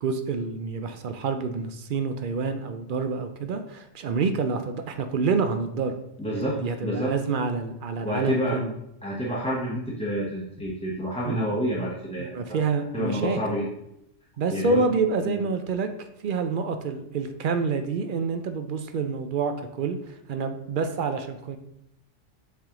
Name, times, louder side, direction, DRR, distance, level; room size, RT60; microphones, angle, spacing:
voice 1, 0.0-5.9 6.3-8.7 11.3-11.4 12.2-13.6 14.4-21.6, right 4 dB, 65° right, 8 dB, 0.5 m, -28 dB
voice 2, 6.2-6.6 6.8-7.1 8.0-8.6 9.0-12.6 12.9-13.7 14.5-14.8 15.2-15.4, equal, 5° left, -6 dB, 0.7 m, -28 dB
7.3 x 3.5 x 3.7 m, 0.80 s
omnidirectional pair, 1.3 m